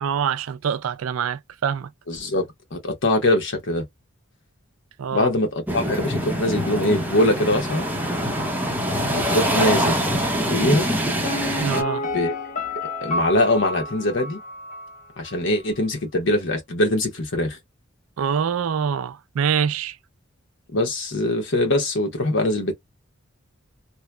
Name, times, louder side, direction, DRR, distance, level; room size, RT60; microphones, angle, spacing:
voice 1, 0.0-1.9 5.0-5.3 11.6-12.1 18.2-20.0, right 7 dB, 90° right, 0.4 m, -25 dB
voice 2, 2.1-3.8 5.1-7.9 9.1-10.0 10.5-10.9 12.1-12.3 13.0-14.4 15.2-17.6 20.7-22.7, left 1 dB, 65° left, 1.1 m, -22 dB
sound 1, 5.7-11.8, equal, 10° right, 0.7 m, -24 dB
Piano, 11.2-15.0 15.3-15.4, left 2 dB, 40° left, 0.9 m, -30 dB
2.9 x 2.1 x 2.2 m
head